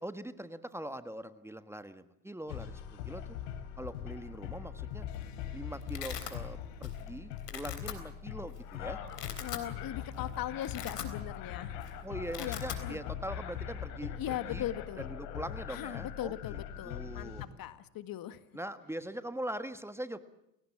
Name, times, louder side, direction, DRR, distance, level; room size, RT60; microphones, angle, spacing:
voice 1, 0.0-3.2 3.8-5.1 5.5-9.0 12.0-14.6 15.1-17.4 18.5-20.2, right 1 dB, 5° right, 11 dB, 1.4 m, -42 dB
sound 1, 2.5-17.5, left 9 dB, 65° left, 3.5 m, -41 dB
Domestic sounds home sounds, 4.9-5.2 5.5-6.4 6.8-7.1 7.4-7.9 8.6-8.7 9.0-9.7 10.1-10.2 10.5-11.5 11.7-11.9 12.2-12.8, left 9 dB, 85° left, 3.7 m, -41 dB
voice 2, 9.4-11.8 12.4-13.0 14.2-15.1 15.7-18.4, left 12 dB, 45° left, 13 dB, 1.8 m, -39 dB
29.5 x 18.0 x 7.4 m, 0.83 s
hypercardioid pair, 80°, 47 cm